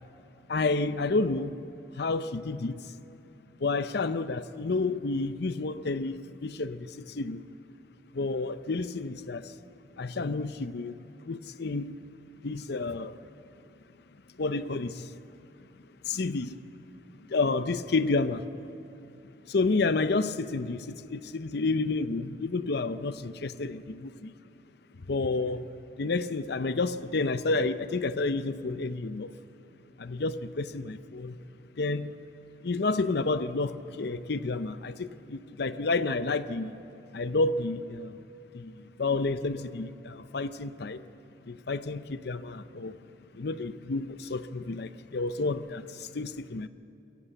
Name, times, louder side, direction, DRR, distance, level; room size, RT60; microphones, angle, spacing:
voice 1, 0.5-1.5 2.0-2.7 3.6-6.1 6.4-6.8 7.2-7.4 8.2-9.4 10.0-10.9 11.3-11.9 12.4-13.1 14.4-14.9 16.1-16.5 17.3-18.4 19.5-20.8 21.1-23.8 25.1-25.6 26.0-29.3 30.0-31.3 31.8-32.1 32.6-36.7 37.1-38.1 38.5-38.7 39.0-39.9 40.3-41.0 41.7-42.9 43.4-45.8 46.2-46.7, left 3 dB, 60° left, 0.6 m, -29 dB
22.5 x 14.5 x 7.9 m
head